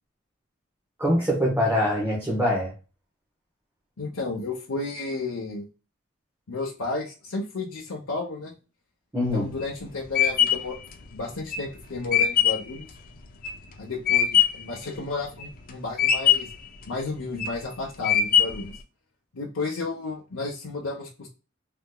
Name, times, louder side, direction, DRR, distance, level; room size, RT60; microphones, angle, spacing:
voice 1, 1.0-2.7 9.1-9.6, left 1 dB, 10° right, -4 dB, 0.8 m, -24 dB
voice 2, 4.0-5.7 6.5-8.5 9.3-10.7 11.1-12.9 13.8-16.5 16.9-18.7 19.3-21.3, left 3 dB, 80° left, -3 dB, 0.8 m, -32 dB
sound 1, 9.3-14.7 15.1-15.7 16.0-16.6 17.2-17.6 18.0-18.7, left 9 dB, 45° left, 0.6 m, -22 dB
3.4 x 2.8 x 2.2 m, 0.33 s
head